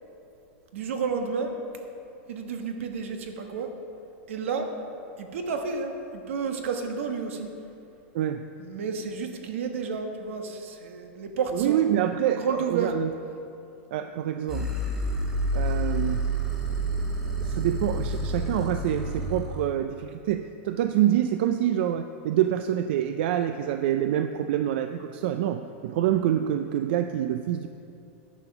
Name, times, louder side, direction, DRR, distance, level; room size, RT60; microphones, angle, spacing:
voice 1, 0.7-1.5 2.3-3.7 4.3-4.7 5.2-7.5 8.6-11.8 12.3-13.0, right 5 dB, 80° right, 5 dB, 1.3 m, -31 dB
voice 2, 11.5-13.1 13.9-14.7 15.5-16.3 17.4-27.7, right 11 dB, 55° right, 8 dB, 0.4 m, -26 dB
sound 1, 14.5-19.7, right 1 dB, 5° right, 1.2 m, -29 dB
10.5 x 6.9 x 5.9 m, 2.7 s
supercardioid pair, 160°, 7 cm